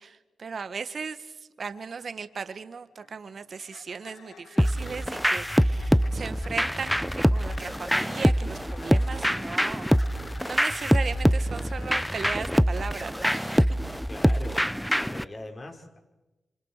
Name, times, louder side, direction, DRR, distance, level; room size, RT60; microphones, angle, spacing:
voice 1, 0.0-13.6, right 5 dB, 55° right, 11 dB, 1.5 m, -37 dB
sound 1, 2.9-12.3, left 7 dB, 80° left, 1.7 m, -51 dB
sound 2, 4.6-15.2, equal, ahead, 0.9 m, -24 dB
voice 2, 14.1-16.0, left 2 dB, 40° left, 2 dB, 6.0 m, -41 dB
27.5 x 26.5 x 6.7 m, 1.1 s
supercardioid pair, 50°, 0 cm